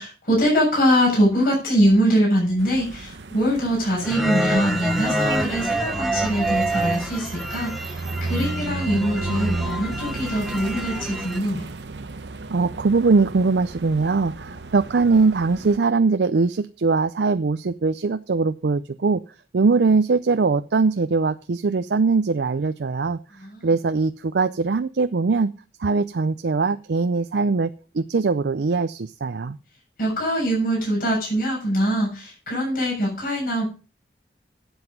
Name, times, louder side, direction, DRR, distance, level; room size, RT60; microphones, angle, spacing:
voice 1, 0.0-11.6 23.3-23.7 30.0-33.7, equal, 55° left, -3 dB, 7.1 m, -23 dB
sound 1, 2.6-15.8, right 2 dB, 85° right, 0.9 m, -33 dB
sound 2, 4.0-11.4, right 1 dB, ahead, 1.1 m, -27 dB
voice 2, 12.5-19.2 19.5-23.2 23.6-25.5 25.8-27.7 27.9-29.6, right 4 dB, 70° right, 11 dB, 0.5 m, -21 dB
12.0 x 8.0 x 5.3 m, 0.35 s
head